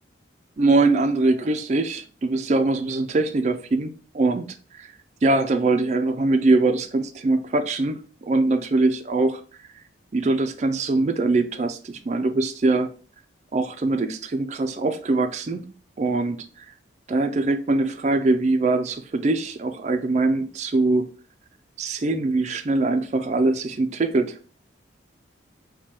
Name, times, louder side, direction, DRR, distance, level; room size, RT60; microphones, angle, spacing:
voice 1, 0.6-4.9 5.2-9.8 10.1-12.9 13.5-15.7 16.0-16.7 17.1-21.1 21.8-24.4, right 2 dB, 35° right, 0.4 m, -22 dB
4.6 x 2.2 x 4.3 m
head